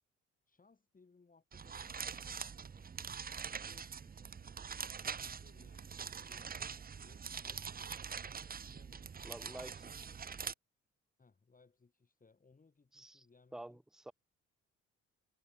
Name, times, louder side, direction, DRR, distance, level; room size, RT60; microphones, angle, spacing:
voice 1, 0.5-3.0 3.4-6.6 7.0-9.5 11.2-13.8, left 4 dB, 30° left, 5.9 m, -67 dB
sound 1, 1.5-10.5, right 6 dB, 30° right, 0.9 m, -44 dB
voice 2, 9.2-10.0 12.9-13.3 13.5-14.1, right 1 dB, ahead, 0.9 m, -49 dB
cardioid pair, 90°, 30 cm